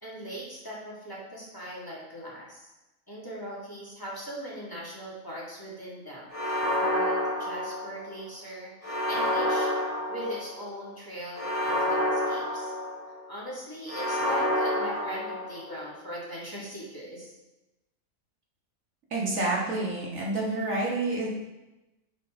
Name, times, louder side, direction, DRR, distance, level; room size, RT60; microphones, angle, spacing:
voice 1, 0.0-2.7 3.1-12.7 13.3-17.3, equal, 15° left, -7 dB, 2.2 m, -40 dB
sound 1, 6.3-8.2 8.8-10.6 11.3-13.2 13.9-15.8, left 1 dB, 55° left, 3.0 m, -28 dB
voice 2, 19.1-21.3, right 2 dB, 70° right, -3 dB, 2.0 m, -28 dB
10.0 x 5.7 x 3.8 m, 1.0 s
omnidirectional pair, 1.5 m